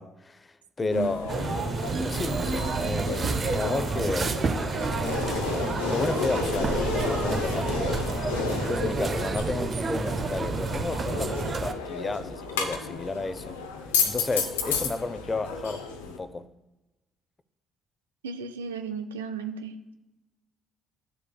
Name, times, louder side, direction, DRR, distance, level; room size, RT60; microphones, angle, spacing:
voice 1, 0.0-4.4 5.9-8.0 8.5-13.6 14.0-16.5, left 3 dB, 30° left, 0.6 m, -32 dB
voice 2, 0.8-1.1 18.2-19.9, right 5 dB, 90° right, 0.4 m, -35 dB
sound 1, 0.9-16.2, left 5 dB, 90° left, 0.6 m, -32 dB
sound 2, 1.3-11.7, right 4 dB, 45° right, 0.7 m, -29 dB
11.0 x 7.2 x 2.3 m
hypercardioid pair, 50°, 0 cm